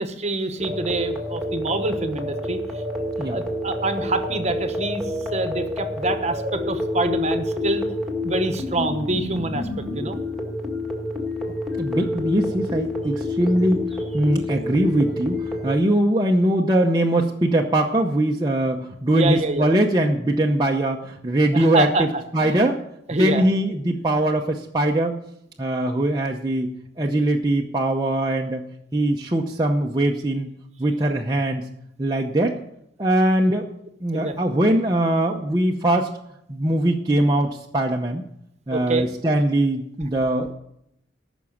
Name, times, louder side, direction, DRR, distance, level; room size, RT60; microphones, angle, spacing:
voice 1, 0.0-5.0 5.3-7.9 8.2-9.7 9.9-10.2 19.1-19.7 21.5-22.6 23.1-23.4 34.1-34.3 38.7-39.1, right 2 dB, 35° right, 8 dB, 1.0 m, -26 dB
sound 1, 0.6-15.7, left 1 dB, ahead, 1.9 m, -28 dB
voice 2, 11.7-13.8 14.1-21.9 22.3-22.8 23.1-25.1 25.6-26.7 27.0-28.6 28.9-30.5 30.8-31.6 32.0-32.5 33.0-33.6 34.0-36.1 36.5-38.2 38.7-40.5, right 1 dB, 20° right, -1 dB, 0.7 m, -21 dB
14.5 x 6.1 x 7.2 m, 0.78 s
head